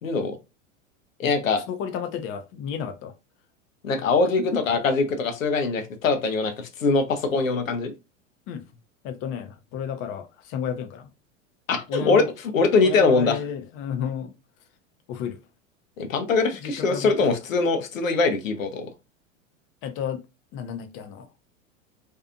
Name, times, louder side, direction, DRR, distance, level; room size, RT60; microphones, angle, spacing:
voice 1, 0.0-0.4 1.2-1.6 3.8-7.9 11.7-12.2 12.5-13.4 16.0-18.9, left 4 dB, 85° left, 0.7 m, -22 dB
voice 2, 1.7-3.1 8.5-8.6 9.0-11.1 11.9-12.3 12.6-14.3 15.1-15.4 16.6-17.1 19.8-20.2 20.5-21.3, left 7 dB, 35° left, 0.5 m, -32 dB
2.6 x 2.4 x 2.4 m
hypercardioid pair, 95°, 39 cm